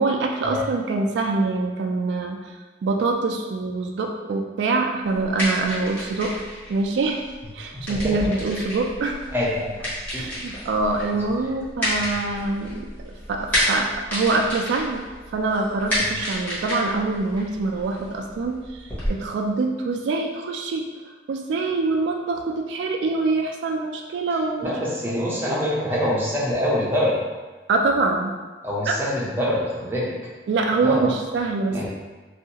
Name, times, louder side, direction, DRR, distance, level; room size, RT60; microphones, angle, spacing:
voice 1, 0.0-2.4 2.8-6.3 6.7-7.2 7.5-9.3 10.1-15.0 15.3-20.9 21.3-24.8 27.7-28.3 28.9-29.0 30.5-31.9, right 3 dB, 80° right, 2 dB, 0.3 m, -24 dB
sound 1, 5.0-19.1, equal, 10° left, 1.0 m, -30 dB
voice 2, 7.7-8.5 9.3-9.9 10.1-10.3 24.6-27.2 28.6-30.1 30.8-31.1 31.7-31.9, left 1 dB, 10° right, -6 dB, 0.5 m, -25 dB
2.7 x 2.4 x 2.8 m, 1.3 s
head